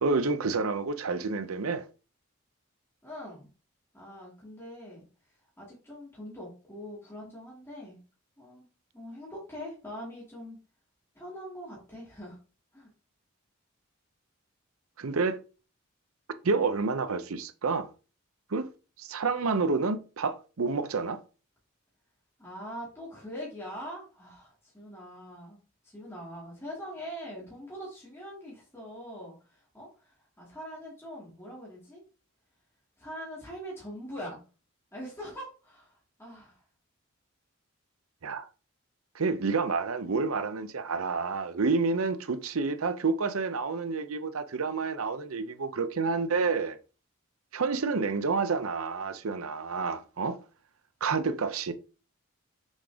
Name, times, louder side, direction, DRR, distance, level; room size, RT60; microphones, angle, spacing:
voice 1, 0.0-1.8 15.0-15.4 16.4-17.9 18.5-18.7 19.0-21.2 38.2-38.5 39.1-46.8 47.5-50.4 51.0-51.7, right 4 dB, 85° right, 0.7 m, -29 dB
voice 2, 3.0-3.5 3.9-5.0 5.6-8.0 8.4-8.7 8.9-10.6 11.1-12.4 12.7-12.9 22.4-32.0 33.0-34.4 34.9-36.6, equal, 10° left, 2.6 m, -43 dB
6.4 x 4.9 x 3.6 m
head